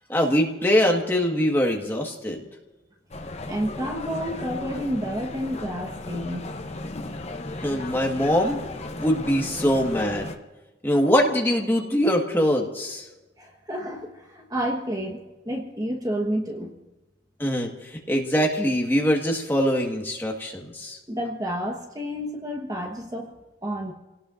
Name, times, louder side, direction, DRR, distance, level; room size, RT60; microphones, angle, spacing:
voice 1, 0.1-2.4 7.6-8.6 9.0-10.3 10.8-13.0 17.4-21.0, equal, 10° left, 0 dB, 1.6 m, -23 dB
sound 1, 3.1-10.4, left 2 dB, 35° left, 0.8 m, -35 dB
voice 2, 3.4-6.6 13.4-16.7 21.1-23.9, equal, 20° right, 2 dB, 1.2 m, -30 dB
30.0 x 18.0 x 2.6 m, 1.1 s
head